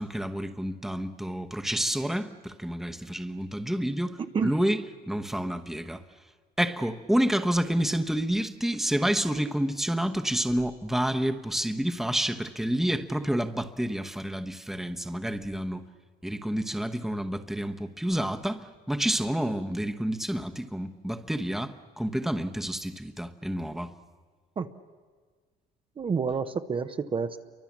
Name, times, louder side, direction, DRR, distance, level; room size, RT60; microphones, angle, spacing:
voice 1, 0.0-6.0 6.6-15.8 16.2-23.9, equal, ahead, 1.1 m, -29 dB
voice 2, 26.0-27.4, right 5 dB, 30° right, 0.9 m, -29 dB
28.5 x 24.0 x 7.3 m
cardioid pair, 110°, 17 cm